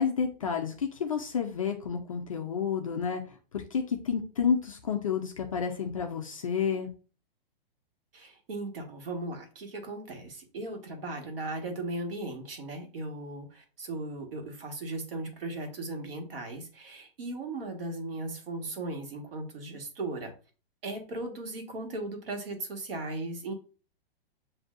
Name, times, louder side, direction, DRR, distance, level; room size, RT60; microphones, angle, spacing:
voice 1, 0.0-3.2 3.5-6.9, left 6 dB, 35° left, 2 dB, 0.4 m, -30 dB
voice 2, 8.1-20.3 20.8-23.5, right 2 dB, 70° right, 3 dB, 1.5 m, -37 dB
7.5 x 2.6 x 2.5 m, 0.37 s
hypercardioid pair, 175°, 30 cm